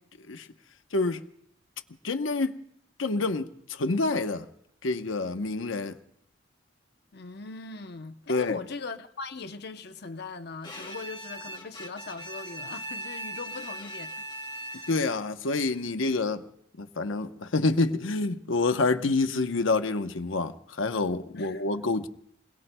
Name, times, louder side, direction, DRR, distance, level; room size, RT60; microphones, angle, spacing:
voice 1, 0.9-1.2 2.0-2.6 3.0-4.5 4.8-6.0 8.3-8.6 14.9-16.4 16.8-22.1, left 3 dB, 80° left, 0.9 m, -27 dB
voice 2, 7.1-14.2 14.7-14.9 21.3-21.6, left 3 dB, 55° left, 0.8 m, -40 dB
Bowed string instrument, 10.6-15.2, right 1 dB, 25° left, 1.8 m, -39 dB
29.5 x 22.0 x 2.2 m
head